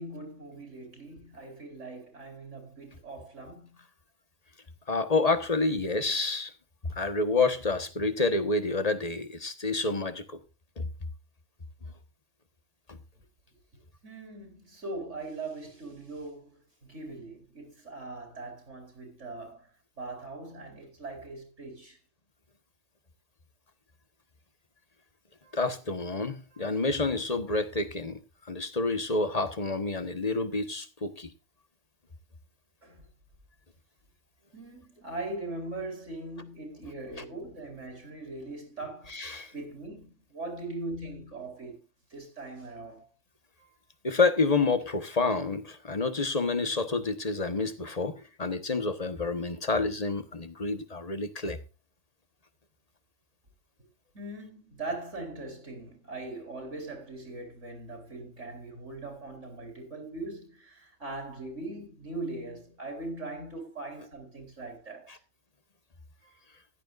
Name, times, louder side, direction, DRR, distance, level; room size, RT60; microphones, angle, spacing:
voice 1, 0.0-3.8 14.0-19.7 20.0-22.0 25.4-25.6 26.5-26.7 32.8-33.0 34.5-41.8 42.1-43.1 43.6-43.7 54.1-65.1 66.2-66.3, right 2 dB, 80° right, 5.0 m, -41 dB
voice 2, 4.9-6.5 6.8-10.4 10.8-10.9 25.5-28.2 28.4-31.3 39.1-39.5 44.0-51.6 65.1-65.2, left 3 dB, 35° left, 1.4 m, -28 dB
15.5 x 12.0 x 2.5 m
omnidirectional pair, 1.2 m